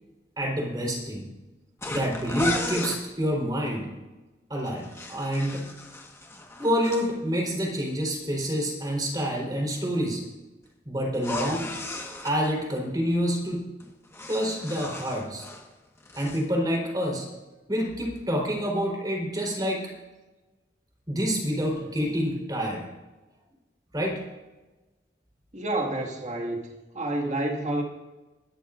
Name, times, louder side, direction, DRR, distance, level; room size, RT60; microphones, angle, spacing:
voice 1, 0.4-1.3 1.9-3.9 4.5-5.6 6.6-10.2 10.8-11.7 12.2-13.6 14.3-15.5 16.2-17.3 17.7-19.8 21.1-22.9 23.9-24.2, equal, 25° right, -1 dB, 4.0 m, -27 dB
sound 1, 1.8-3.0 4.7-7.1 11.1-12.4 13.8-15.7 16.0-16.4, left 2 dB, 15° left, 1.5 m, -35 dB
voice 2, 25.5-26.6 26.9-27.8, right 1 dB, 40° right, 1 dB, 2.0 m, -28 dB
22.0 x 14.0 x 2.6 m, 1.1 s
head